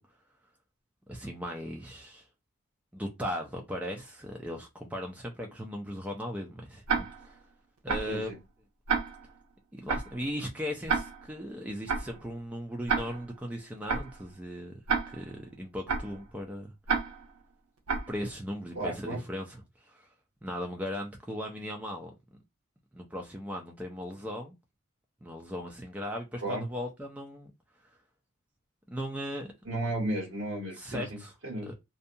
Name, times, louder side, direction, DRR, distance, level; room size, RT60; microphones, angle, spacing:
voice 1, 1.1-2.3 2.9-7.4 7.8-8.3 9.7-14.8 15.1-16.7 18.1-20.1 20.4-22.1 22.9-24.5 25.2-27.5 28.9-29.5 30.7-31.3 31.7-31.8, equal, 5° right, 0.3 m, -37 dB
Tick-tock, 6.9-7.4 7.9-8.2 8.9-9.4 9.9-10.2 10.9-11.4 11.9-12.2 12.9-13.4 13.9-14.2 14.9-15.4 15.9-16.2 16.9-17.4 17.9-18.2, right 5 dB, 85° right, 0.6 m, -31 dB
voice 2, 8.1-8.4 18.7-19.2 26.4-26.7 29.6-31.7, right 1 dB, 60° right, 1.4 m, -34 dB
2.6 x 2.2 x 2.6 m
head